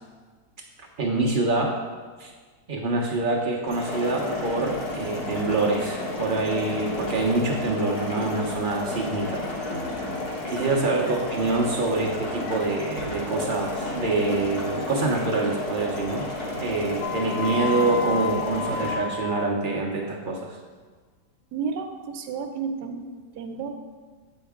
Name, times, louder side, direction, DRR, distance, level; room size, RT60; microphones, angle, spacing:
voice 1, 1.0-1.8 2.2-2.3 2.7-9.4 10.5-16.2 16.6-20.6, right 3 dB, 55° right, -1 dB, 0.6 m, -26 dB
sound 1, 3.7-18.9, left 2 dB, 60° left, 1.7 m, -32 dB
sound 2, 17.0-19.6, left 4 dB, 85° left, 1.2 m, -31 dB
voice 2, 21.5-23.1 23.3-23.7, right 6 dB, 75° right, 6 dB, 1.2 m, -31 dB
8.1 x 5.2 x 3.6 m, 1.5 s
omnidirectional pair, 1.9 m